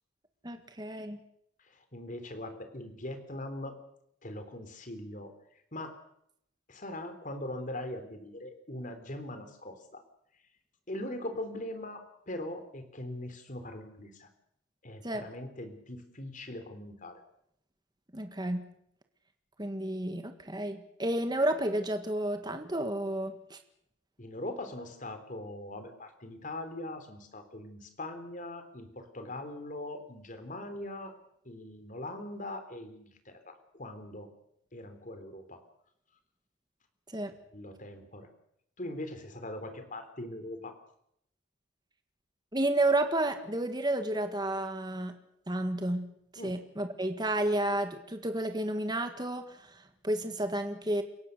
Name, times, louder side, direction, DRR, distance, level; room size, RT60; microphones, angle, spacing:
voice 1, 0.4-1.2 15.0-15.3 18.1-18.6 19.6-23.6 37.1-37.3 42.5-45.1 45.5-46.1 46.4-51.0, right 1 dB, 20° right, 7 dB, 1.6 m, -31 dB
voice 2, 1.7-3.7 4.2-5.3 5.7-5.9 6.7-10.0 10.9-14.3 14.8-17.2 24.2-31.1 31.5-34.3 34.7-35.6 37.5-38.3 38.8-40.8 46.4-46.6, left 1 dB, 40° left, 8 dB, 3.6 m, -41 dB
29.0 x 17.0 x 6.8 m, 0.73 s
head